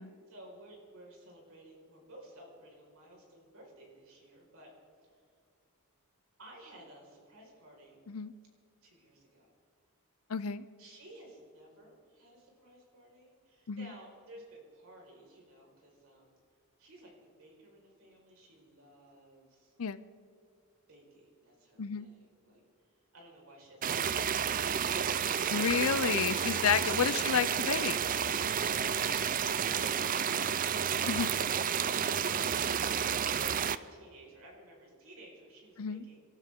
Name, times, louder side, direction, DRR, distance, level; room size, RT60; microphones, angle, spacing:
voice 1, 0.3-4.7 5.0-5.2 6.4-8.0 8.8-9.5 10.8-16.4 16.8-17.1 17.4-19.7 20.9-22.6 23.1-25.7 32.5-36.2, right 1 dB, 70° right, -1 dB, 5.0 m, -55 dB
voice 2, 10.3-10.6 13.7-13.9 19.8-20.0 21.8-22.1 25.5-28.0 31.0-31.3 35.8-36.0, left 7 dB, 75° left, 15 dB, 0.6 m, -31 dB
sound 1, 23.8-33.8, right 8 dB, 40° right, 0.5 m, -31 dB
28.5 x 13.0 x 3.7 m, 2.4 s
head